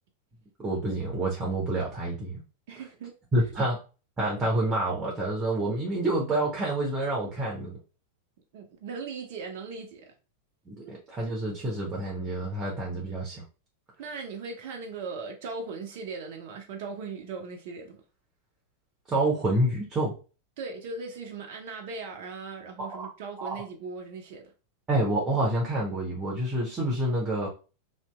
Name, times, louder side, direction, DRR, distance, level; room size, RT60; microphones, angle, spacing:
voice 1, 0.6-2.4 3.3-3.8 4.2-7.8 10.7-13.4 19.1-20.1 22.9-23.1 23.4-23.6 24.9-27.5, right 1 dB, 20° right, 0.8 m, -28 dB
voice 2, 2.7-3.4 8.5-10.1 10.8-10.9 14.0-18.0 20.6-24.4, right 4 dB, 50° right, 0.5 m, -38 dB
2.7 x 2.5 x 2.2 m
figure-of-eight pair, 90°, 0 cm